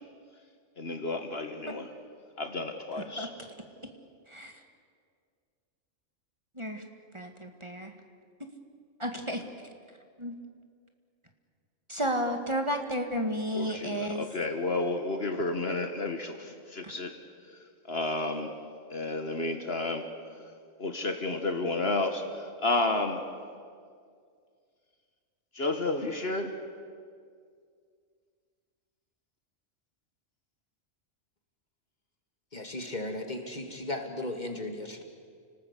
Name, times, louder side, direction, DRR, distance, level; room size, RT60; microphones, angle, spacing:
voice 1, 0.8-1.9 2.4-3.3 13.5-17.1 17.5-18.5 18.9-20.1 20.3-20.5 20.8-23.2 25.5-26.6, left 2 dB, 50° left, 6 dB, 1.6 m, -31 dB
voice 2, 4.3-4.6 6.6-6.8 7.1-7.9 9.0-9.4 10.2-10.4 11.9-14.3, equal, 25° right, 4 dB, 1.9 m, -32 dB
voice 3, 32.5-35.0, left 1 dB, 35° left, 4 dB, 2.4 m, -36 dB
29.5 x 19.5 x 8.3 m, 2.2 s
omnidirectional pair, 1.3 m